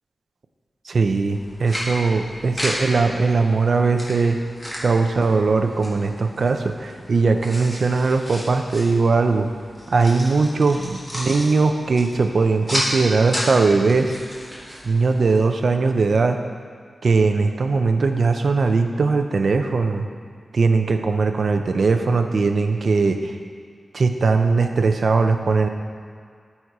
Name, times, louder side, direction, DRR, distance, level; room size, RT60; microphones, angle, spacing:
voice 1, 0.8-4.4 4.8-9.5 9.9-14.1 14.8-16.4 17.0-20.0 20.5-23.3 23.9-25.7, right 4 dB, 60° right, 6 dB, 0.6 m, -20 dB
sound 1, 1.3-15.6, equal, 10° left, 1.8 m, -33 dB
12.5 x 4.3 x 4.7 m, 2.2 s
wide cardioid pair, 130°, 0 cm